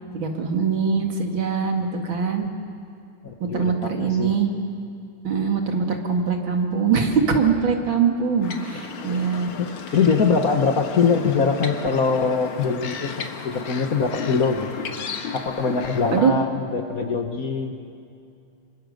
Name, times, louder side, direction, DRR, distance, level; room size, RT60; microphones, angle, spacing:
voice 1, 0.1-2.5 3.4-4.5 5.2-9.5 16.1-16.3, right 6 dB, 65° right, 3 dB, 2.8 m, -22 dB
voice 2, 3.2-4.3 9.6-14.7 15.3-17.7, left 5 dB, 45° left, 5 dB, 1.5 m, -23 dB
sound 1, 8.4-16.2, left 6 dB, 85° left, 2.3 m, -34 dB
26.5 x 24.0 x 6.6 m, 2.5 s
omnidirectional pair, 2.3 m